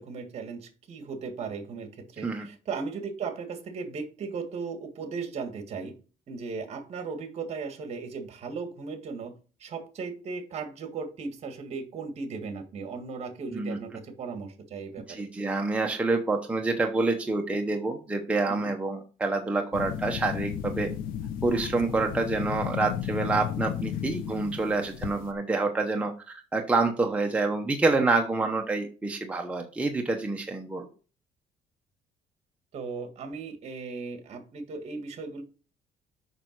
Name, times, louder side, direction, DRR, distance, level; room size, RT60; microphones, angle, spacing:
voice 1, 0.0-5.9 6.3-9.3 9.6-15.3 18.5-18.7 32.7-35.4, right 4 dB, 50° right, 7 dB, 1.7 m, -37 dB
voice 2, 15.1-20.9 21.4-30.9, right 3 dB, 10° right, 2 dB, 0.9 m, -27 dB
sound 1, 19.7-25.3, left 10 dB, 85° left, 0.9 m, -34 dB
6.7 x 5.8 x 4.5 m, 0.36 s
cardioid pair, 140°, 14 cm